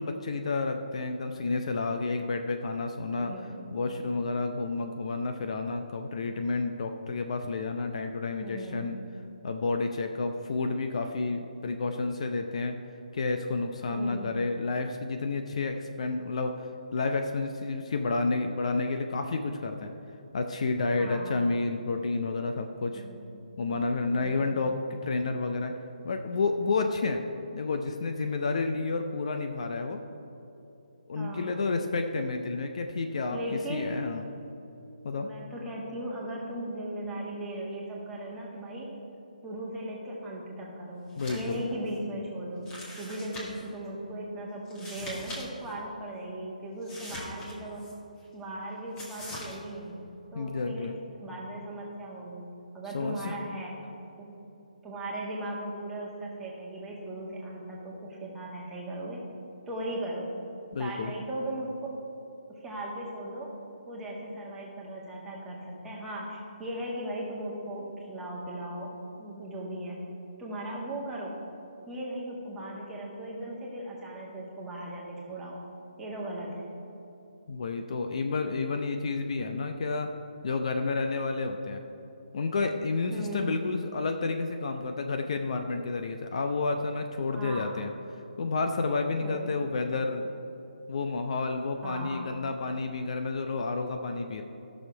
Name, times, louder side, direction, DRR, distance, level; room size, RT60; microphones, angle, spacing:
voice 1, 0.0-3.3 3.7-9.0 9.4-12.8 13.1-19.9 20.3-23.0 23.6-25.7 26.0-27.2 27.5-30.0 31.1-33.4 33.7-34.2 35.0-35.3 41.2-41.6 50.3-51.0 52.9-53.4 60.7-61.1 77.5-80.1 80.4-81.8 82.3-87.9 88.4-90.3 90.9-94.4, left 3 dB, 50° left, 5 dB, 0.6 m, -30 dB
voice 2, 3.2-3.6 8.4-9.0 13.9-14.4 21.0-21.4 22.9-23.2 24.1-24.6 31.1-31.6 33.3-33.9 35.1-38.9 39.4-42.7 43.0-47.8 48.3-50.0 50.3-52.5 52.7-53.7 54.2-54.3 54.8-59.2 59.7-60.3 60.8-61.7 62.5-63.5 63.9-68.9 69.2-70.0 70.4-71.4 71.9-75.6 76.0-76.7 83.1-83.5 87.3-87.8 89.2-89.6 91.8-92.3, right 1 dB, 10° right, -5 dB, 1.6 m, -38 dB
sound 1, 41.1-41.6 41.9-42.0 42.7-43.7 44.7-45.4 45.7-45.8 46.8-47.9 49.0-49.6, left 1 dB, 15° left, 1.8 m, -42 dB
13.5 x 6.5 x 4.6 m, 2.9 s
figure-of-eight pair, 145°, 4 cm